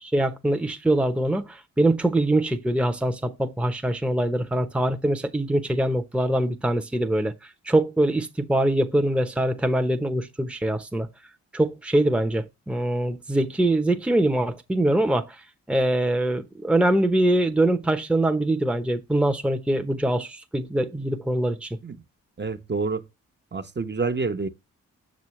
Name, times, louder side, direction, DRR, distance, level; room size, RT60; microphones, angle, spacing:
voice 1, 0.0-7.3 7.7-11.1 11.5-15.4 15.7-21.7, right 1 dB, 5° right, 0.9 m, -23 dB
voice 2, 22.4-23.0 23.5-24.5, right 4 dB, 30° right, 1.1 m, -27 dB
6.7 x 6.3 x 3.2 m
supercardioid pair, 50°, 35 cm